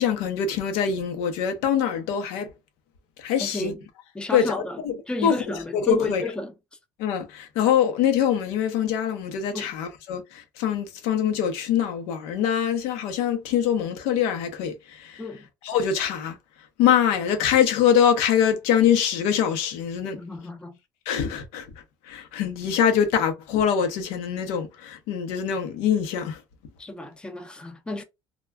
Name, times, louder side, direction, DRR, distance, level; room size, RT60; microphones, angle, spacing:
voice 1, 0.0-2.5 3.2-3.7 4.3-5.0 5.2-6.2 7.0-15.2 15.6-16.4 16.8-20.2 21.1-21.7 22.0-26.4, left 8 dB, 90° left, 0.7 m, -24 dB
voice 2, 3.4-3.8 4.1-4.8 5.1-6.5 9.5-9.7 15.2-15.5 20.1-20.8 26.8-28.0, left 2 dB, 10° left, 0.5 m, -32 dB
2.3 x 2.2 x 3.3 m
cardioid pair, 140°, 10 cm